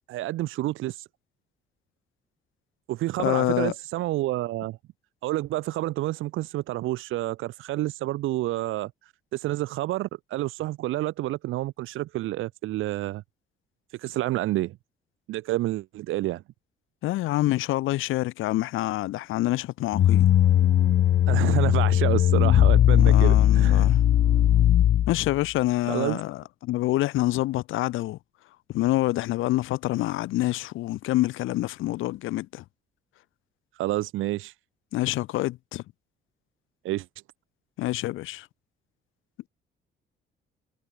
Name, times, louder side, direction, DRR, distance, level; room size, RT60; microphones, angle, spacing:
voice 1, 0.1-1.1 2.9-4.8 5.2-13.2 13.9-14.8 15.3-16.4 21.3-23.9 25.9-26.2 33.7-34.5 36.8-37.1, right 16 dB, 90° right, 1.4 m, -29 dB
voice 2, 3.2-3.7 17.0-20.3 23.0-24.0 25.1-28.2 28.7-32.6 34.9-35.8 37.8-38.5, left 16 dB, 90° left, 1.5 m, -27 dB
sound 1, 19.9-25.4, left 11 dB, 65° left, 1.5 m, -19 dB
cardioid pair, 90°, 20 cm